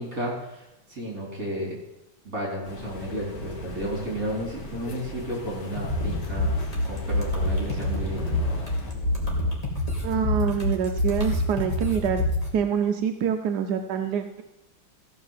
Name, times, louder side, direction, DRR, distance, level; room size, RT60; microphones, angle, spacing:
voice 1, 0.0-1.8 2.2-6.5 6.8-8.4, equal, 40° right, -3 dB, 4.4 m, -32 dB
sound 1, 2.6-8.9, equal, 70° left, 2.5 m, -40 dB
sound 2, 5.8-12.5, left 1 dB, 20° left, 2.3 m, -27 dB
voice 2, 10.0-12.2 12.5-14.4, right 7 dB, 65° right, 5 dB, 1.1 m, -26 dB
15.0 x 5.6 x 7.3 m, 0.90 s
omnidirectional pair, 2.3 m